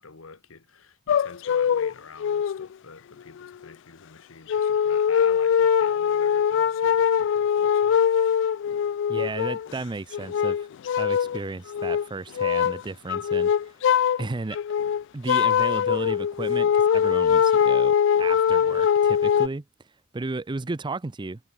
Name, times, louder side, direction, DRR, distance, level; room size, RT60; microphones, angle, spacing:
voice 1, 0.0-8.0, left 4 dB, 80° left, 1.4 m, -47 dB
sound 1, 1.1-1.9 2.2-2.7 3.4-3.5 4.5-9.7 10.1-11.4 11.7-12.0 12.4-12.8 13.1-14.2 14.5-19.5, left 8 dB, 60° left, 0.3 m, -22 dB
voice 2, 9.1-10.7 11.0-13.7 14.2-14.6 15.1-19.6 20.1-21.4, right 3 dB, 25° right, 0.5 m, -34 dB
head